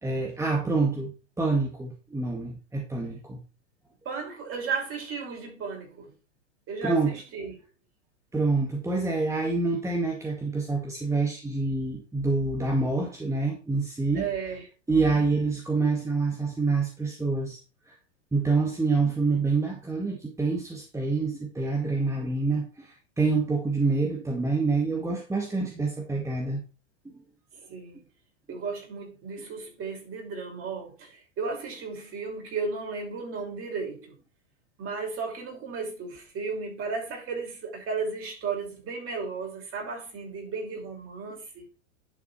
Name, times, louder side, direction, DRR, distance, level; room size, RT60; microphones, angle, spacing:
voice 1, 0.0-3.4 6.8-7.1 8.3-14.3 14.9-17.6 17.9-18.0 18.3-26.6, right 3 dB, 10° right, 2.0 m, -27 dB
voice 2, 4.0-6.1 6.7-7.6 14.1-14.7 27.5-28.0 28.5-34.1 34.8-41.7, right 4 dB, 35° right, 6.0 m, -34 dB
11.0 x 6.1 x 4.4 m
hypercardioid pair, 110°, 38 cm